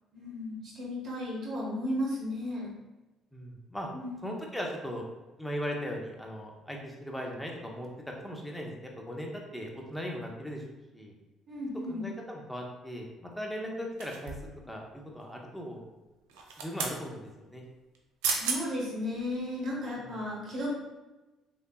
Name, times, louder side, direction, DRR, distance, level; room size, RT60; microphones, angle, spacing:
voice 1, 0.1-2.7 3.9-4.3 11.5-12.1 18.3-20.7, left 1 dB, 55° right, -5 dB, 1.4 m, -34 dB
voice 2, 3.3-3.9 4.2-5.0 5.4-7.9 8.2-10.6 10.9-11.2 11.9-14.3 14.7-15.8 16.6-17.6 20.0-20.1, equal, 5° left, 0 dB, 0.8 m, -38 dB
sound 1, 14.0-14.6 16.3-17.0 17.9-18.0 18.2-18.6 19.1-19.3, right 5 dB, 80° right, 0.4 m, -33 dB
3.2 x 2.9 x 2.3 m, 1.1 s
hypercardioid pair, 60°, 0 cm